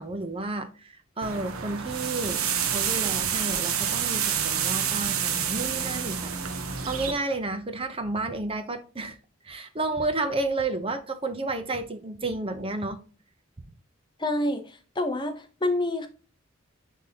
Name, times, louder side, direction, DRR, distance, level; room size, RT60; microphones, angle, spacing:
voice 1, 0.0-6.3 6.9-9.2 9.4-13.0, right 2 dB, 25° right, 0.7 m, -31 dB
sound 1, 1.2-7.1, right 8 dB, 90° right, 1.0 m, -28 dB
voice 2, 14.2-16.1, left 1 dB, 20° left, 0.8 m, -28 dB
9.8 x 3.6 x 2.8 m
head